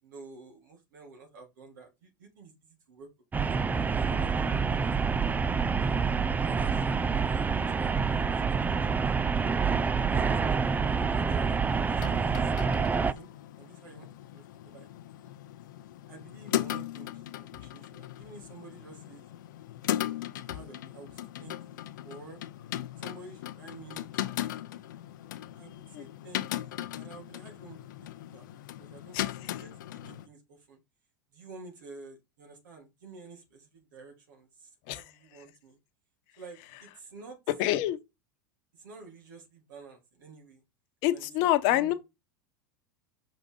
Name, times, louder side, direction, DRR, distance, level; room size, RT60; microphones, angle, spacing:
voice 1, 0.0-3.1 3.5-5.1 5.8-6.1 6.4-8.4 8.9-9.0 10.1-13.3 13.6-14.9 15.2-15.3 16.1-19.3 19.8-22.4 23.0-24.4 25.5-28.4 28.8-30.8 31.3-35.8 36.4-37.4 38.7-40.6 41.1-42.0, right 3 dB, 80° right, 3.1 m, -50 dB
sound 1, 3.3-13.1, right 5 dB, 15° right, 0.5 m, -27 dB
sound 2, 11.6-30.3, left 13 dB, 75° left, 0.7 m, -38 dB
voice 2, 37.6-38.0 41.0-41.9, left 14 dB, 60° left, 1.1 m, -26 dB
5.9 x 5.1 x 3.9 m
hypercardioid pair, 95°, 10 cm